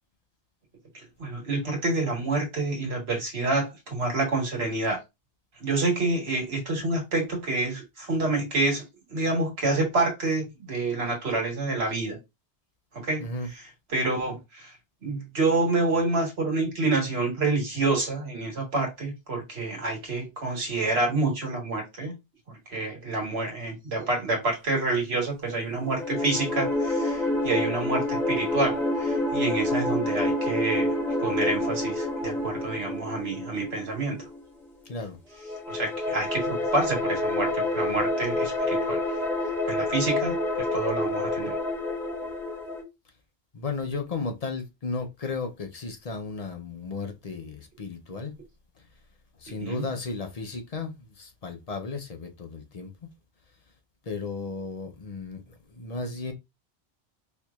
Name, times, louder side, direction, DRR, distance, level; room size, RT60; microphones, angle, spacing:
voice 1, 1.2-5.0 5.6-8.8 9.1-12.2 12.9-14.7 15.0-22.1 22.7-30.9 31.2-34.2 35.7-39.0 39.7-41.6 49.6-49.8, right 2 dB, 80° right, 1.6 m, -28 dB
voice 2, 13.2-13.5 34.9-35.2 43.5-48.3 49.4-52.9 54.1-56.3, left 3 dB, 45° left, 0.6 m, -34 dB
sound 1, 25.8-34.4 35.4-42.8, left 1 dB, ahead, 0.9 m, -28 dB
4.5 x 2.8 x 2.3 m
omnidirectional pair, 1.1 m